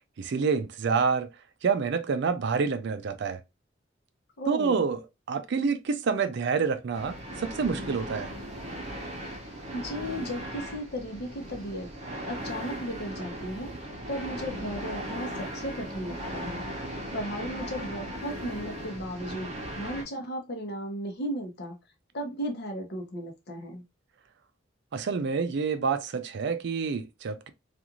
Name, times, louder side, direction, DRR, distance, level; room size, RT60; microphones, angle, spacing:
voice 1, 0.2-1.3 1.6-3.4 4.5-8.3 24.9-27.5, right 5 dB, 60° right, 0.4 m, -28 dB
voice 2, 4.4-4.8 9.7-11.9 12.3-13.7 14.1-16.6 17.1-21.8 22.1-23.8, equal, 60° left, 0.8 m, -35 dB
sound 1, 6.9-20.0, right 1 dB, 35° right, 0.8 m, -38 dB
2.5 x 2.4 x 2.8 m
head